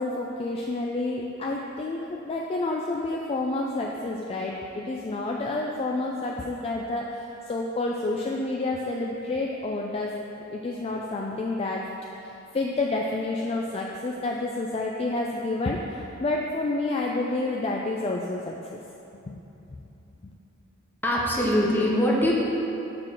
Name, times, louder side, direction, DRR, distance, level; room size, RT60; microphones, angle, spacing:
voice 1, 0.0-10.1 10.5-11.9 12.2-18.8 19.3-19.4, left 2 dB, 30° left, -1 dB, 0.3 m, -29 dB
voice 2, 21.0-22.3, equal, 10° left, -4 dB, 0.9 m, -22 dB
6.7 x 3.8 x 6.0 m, 2.9 s
head